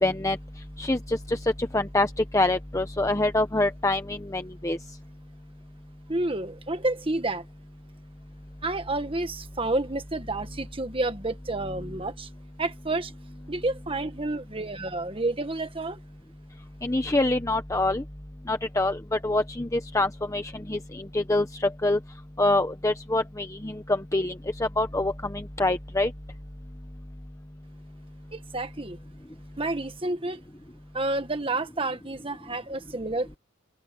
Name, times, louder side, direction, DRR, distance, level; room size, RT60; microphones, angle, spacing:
voice 1, 0.0-0.4 0.8-1.4 1.7-2.1 2.3-4.8 16.8-18.0 18.5-21.5 21.8-22.0 22.4-24.3 24.6-26.1, left 2 dB, 15° left, 0.9 m, -25 dB
voice 2, 6.1-7.4 8.6-12.3 12.6-13.1 13.5-16.0 28.3-29.0 29.6-30.4 30.9-33.4, right 2 dB, 25° right, 1.6 m, -30 dB
head